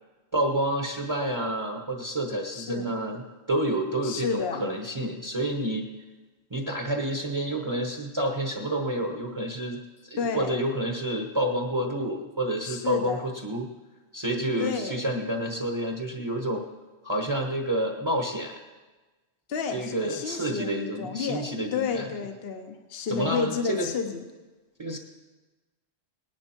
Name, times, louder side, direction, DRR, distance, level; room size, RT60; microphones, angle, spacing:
voice 1, 0.3-5.9 6.5-13.7 14.1-16.6 17.0-18.6 19.7-22.1 23.1-23.9 24.8-25.0, right 1 dB, 25° right, 2 dB, 1.0 m, -29 dB
voice 2, 2.5-2.9 4.0-4.7 10.2-10.6 12.6-13.2 14.6-15.0 19.5-21.5 21.7-24.2, left 6 dB, 55° left, 5 dB, 1.2 m, -31 dB
19.0 x 11.0 x 4.4 m, 1.2 s
omnidirectional pair, 1.3 m